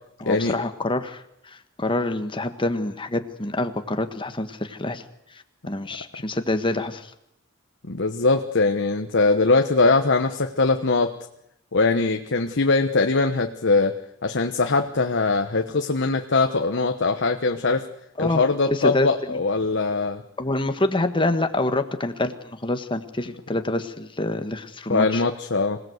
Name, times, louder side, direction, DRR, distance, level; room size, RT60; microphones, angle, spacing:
voice 1, 0.2-5.0 5.7-7.1 18.2-19.4 20.4-25.2, left 2 dB, 25° left, 8 dB, 1.5 m, -26 dB
voice 2, 7.9-11.1 11.7-13.9 14.2-17.9 18.2-20.2 24.9-25.8, left 3 dB, 60° left, 5 dB, 1.1 m, -21 dB
25.5 x 17.5 x 8.0 m, 0.78 s
head